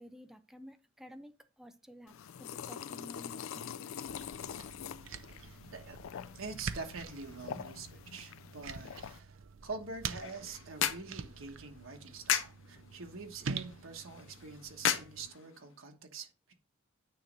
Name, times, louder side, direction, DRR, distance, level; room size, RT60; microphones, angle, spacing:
voice 1, 0.0-2.1 2.4-3.7 7.5-7.7, equal, ahead, 0.5 m, -52 dB
sound 1, 2.1-9.2, left 8 dB, 90° left, 0.4 m, -45 dB
sound 2, 4.1-15.3, right 5 dB, 70° right, 0.5 m, -46 dB
voice 2, 5.4-6.0 6.4-16.5, right 4 dB, 90° right, 1.2 m, -45 dB
sound 3, 9.9-15.9, left 9 dB, 70° left, 0.7 m, -37 dB
9.2 x 3.2 x 5.3 m
head